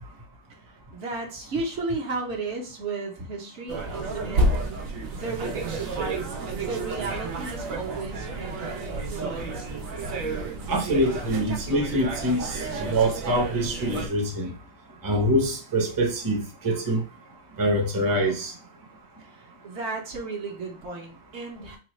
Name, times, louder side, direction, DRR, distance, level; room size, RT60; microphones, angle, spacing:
voice 1, 0.9-4.4 5.1-5.6 6.5-9.7 19.6-21.8, right 3 dB, 60° right, 1.1 m, -34 dB
sound 1, 3.7-14.1, right 2 dB, 85° right, 1.1 m, -30 dB
voice 2, 10.7-14.5 15.0-17.0 17.6-18.5, right 1 dB, 20° right, 0.6 m, -25 dB
4.2 x 2.3 x 3.0 m
omnidirectional pair, 1.4 m